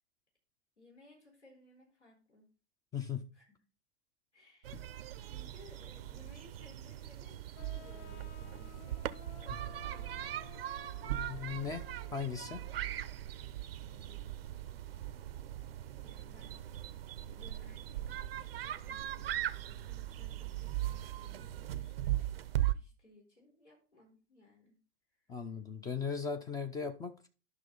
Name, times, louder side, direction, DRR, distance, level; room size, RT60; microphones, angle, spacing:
voice 1, 0.8-2.5 3.3-3.6 4.3-4.9 5.2-11.1 13.7-14.4 16.0-16.6 17.3-24.8 25.2-25.4, left 1 dB, 85° left, -1 dB, 4.2 m, -61 dB
voice 2, 2.9-3.3 11.0-11.8 12.1-12.6 25.3-27.3, left 6 dB, 10° left, 7 dB, 0.5 m, -38 dB
sound 1, 4.6-22.7, right 13 dB, 60° right, 0.6 m, -39 dB
sound 2, 7.6-13.1, left 8 dB, 60° left, 1.0 m, -56 dB
10.5 x 6.0 x 3.9 m, 0.34 s
figure-of-eight pair, 100°, 34 cm